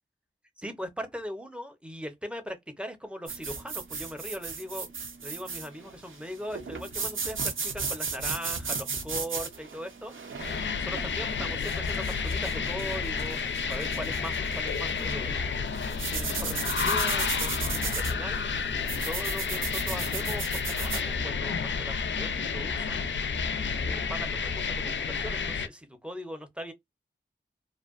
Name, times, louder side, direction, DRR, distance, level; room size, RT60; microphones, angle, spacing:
voice 1, 0.6-4.9 5.2-10.4 10.8-15.7 16.1-18.4 19.0-23.1 23.8-26.7, equal, 5° right, 0.6 m, -40 dB
sound 1, 3.3-21.1, right 4 dB, 75° right, 0.6 m, -36 dB
sound 2, 10.4-25.7, left 5 dB, 65° left, 0.4 m, -30 dB
2.5 x 2.2 x 2.4 m
wide cardioid pair, 65°, 20 cm